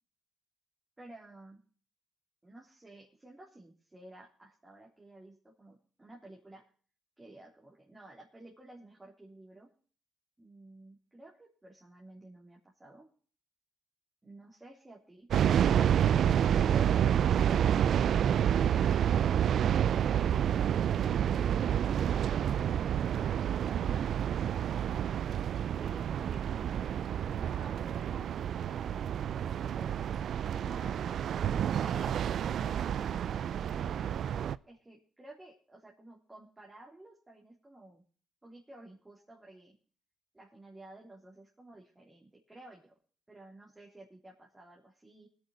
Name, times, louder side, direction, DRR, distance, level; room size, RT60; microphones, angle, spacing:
voice 1, 1.0-1.6 2.4-6.6 7.2-9.7 10.4-13.1 14.2-15.3 25.8-31.4 31.8-32.3 32.6-38.0 38.4-39.7 40.3-42.9 43.3-45.3, right 2 dB, 15° right, -2 dB, 3.3 m, -53 dB
sound 1, 15.3-34.6, right 9 dB, 65° right, 0.5 m, -29 dB
21.5 x 8.0 x 3.9 m, 0.43 s
cardioid pair, 90°, 0 cm